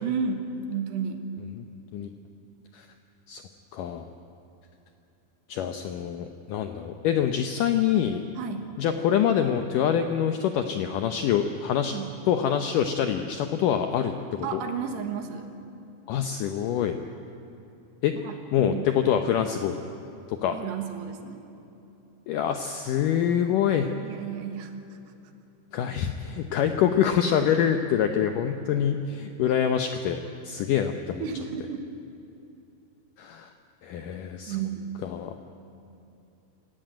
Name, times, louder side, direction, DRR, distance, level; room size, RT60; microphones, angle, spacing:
voice 1, 0.0-1.2 8.4-8.7 11.8-12.1 14.4-15.5 18.2-18.9 20.5-21.4 24.0-24.7 29.4-29.5 31.2-31.8 34.5-34.9, right 6 dB, 80° right, 6 dB, 3.5 m, -32 dB
voice 2, 3.7-4.1 5.5-8.2 8.8-12.0 12.3-14.6 16.1-17.0 18.0-18.1 18.5-19.8 20.3-20.6 22.3-23.9 25.7-31.2 33.2-33.5 33.8-34.6 35.0-35.3, left 9 dB, 80° left, 7 dB, 1.9 m, -25 dB
27.0 x 15.5 x 9.1 m, 2.8 s
omnidirectional pair, 4.8 m